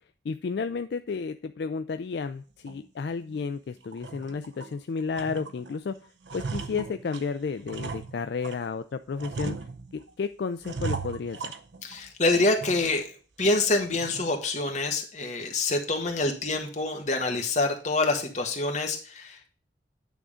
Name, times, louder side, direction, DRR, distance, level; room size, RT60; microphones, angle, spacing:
voice 1, 0.2-6.0 6.3-9.6 9.9-11.6, left 5 dB, 65° left, 10 dB, 0.4 m, -32 dB
sound 1, 2.7-2.8 3.3-3.4 3.8-4.8 5.1-5.8 6.0-8.7 9.2-10.1 10.6-12.1 12.4-13.0 13.4-13.5 14.0-14.4, right 4 dB, 75° right, 0.7 m, -37 dB
voice 2, 11.8-13.1 13.4-19.5, left 2 dB, 40° left, 3 dB, 1.5 m, -26 dB
9.2 x 3.7 x 5.0 m, 0.38 s
head